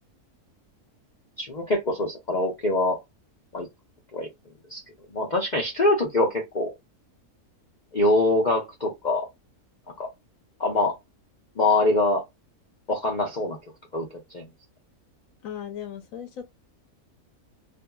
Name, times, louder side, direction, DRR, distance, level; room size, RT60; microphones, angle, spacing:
voice 1, 1.4-3.0 3.5-3.7 4.1-4.3 4.7-4.8 5.1-6.7 7.9-9.3 10.0-10.1 10.6-11.0 11.6-12.2 12.9-13.6 13.9-14.1 14.3-14.5, left 2 dB, 50° left, 0.5 m, -24 dB
voice 2, 15.4-16.5, left 9 dB, 70° left, 1.0 m, -37 dB
2.6 x 2.6 x 2.3 m
omnidirectional pair, 1.6 m